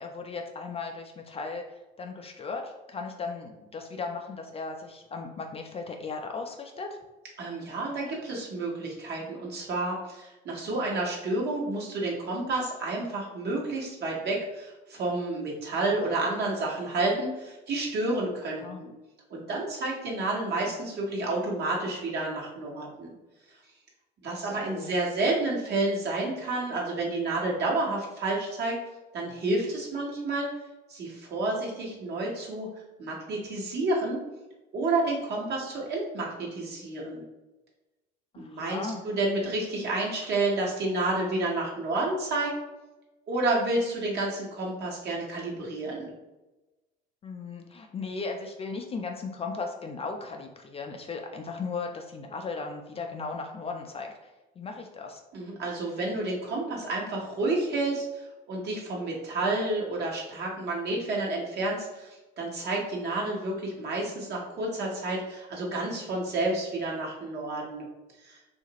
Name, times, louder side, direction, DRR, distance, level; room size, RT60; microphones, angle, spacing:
voice 1, 0.0-7.0 18.6-18.8 24.4-24.9 38.3-39.0 47.2-55.2, left 4 dB, 30° left, 3 dB, 0.4 m, -37 dB
voice 2, 7.4-18.9 19.3-23.1 24.2-28.8 29.1-30.5 30.9-32.7 33.0-34.2 34.7-37.2 38.4-42.5 43.3-46.1 55.3-67.9 68.2-68.4, right 2 dB, 50° right, -3 dB, 1.1 m, -30 dB
2.8 x 2.4 x 2.8 m, 1.0 s
supercardioid pair, 80°, 21 cm